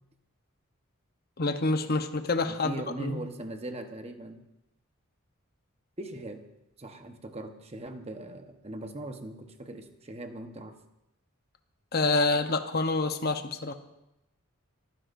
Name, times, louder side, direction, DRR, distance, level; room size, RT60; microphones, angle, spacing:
voice 1, 1.4-3.2 11.9-13.7, left 3 dB, 45° left, 7 dB, 0.9 m, -27 dB
voice 2, 2.5-4.4 6.0-6.4 6.8-10.7, right 1 dB, 30° right, 6 dB, 1.1 m, -40 dB
24.0 x 15.0 x 2.6 m, 0.87 s
head